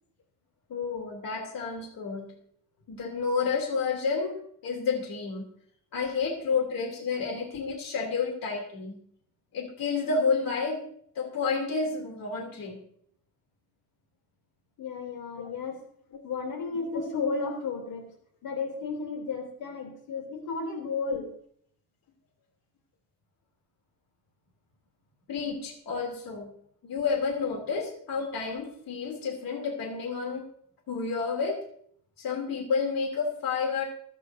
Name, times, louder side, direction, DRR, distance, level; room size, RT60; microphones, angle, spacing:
voice 1, 0.7-2.3 2.9-5.4 5.9-9.0 9.5-10.8 11.1-12.8 15.4-15.5 21.1-21.2 25.3-26.5 26.8-30.5 30.9-31.6 32.2-33.8, left 5 dB, 70° left, 2 dB, 3.0 m, -30 dB
voice 2, 14.8-15.8 16.2-18.1 18.4-21.3, left 4 dB, 85° left, 3 dB, 3.1 m, -33 dB
26.5 x 9.2 x 2.7 m, 0.63 s
cardioid pair, 145°, 35 cm